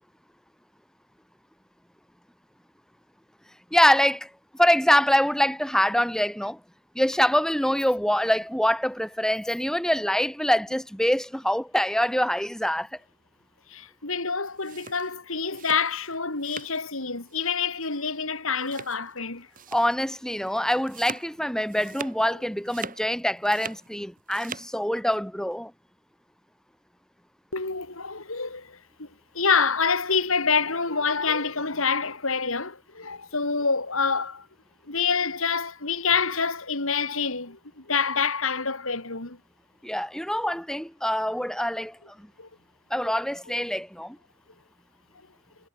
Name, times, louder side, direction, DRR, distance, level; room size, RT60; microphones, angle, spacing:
voice 1, 3.7-4.3 4.6-6.6 6.9-12.9 19.7-25.7 39.8-42.3 42.9-44.2, equal, 5° left, 2.4 m, -24 dB
voice 2, 13.7-19.5 27.5-29.1 29.3-34.5 34.9-39.4 42.4-42.5, left 5 dB, 75° left, 3.8 m, -27 dB
sound 1, 14.5-16.9 17.2-17.6 17.8-18.0 18.6-19.2 19.5-20.0 20.3-22.3 22.6-23.9 24.2-24.7, right 5 dB, 40° right, 7.1 m, -41 dB
head